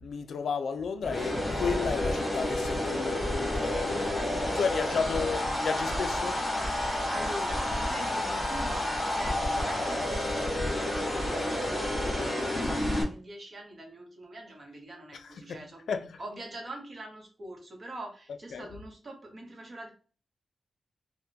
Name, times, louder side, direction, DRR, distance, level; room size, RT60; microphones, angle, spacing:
voice 1, 0.0-4.1 4.5-6.4 15.1-15.6 15.9-16.2 18.5-18.7, left 5 dB, 85° left, 0.3 m, -33 dB
sound 1, 1.0-13.0, left 1 dB, 10° left, 1.4 m, -30 dB
voice 2, 4.1-5.3 7.1-15.9 16.2-19.9, right 1 dB, 40° right, 0.9 m, -44 dB
3.4 x 2.1 x 2.8 m
wide cardioid pair, 140°, 0 cm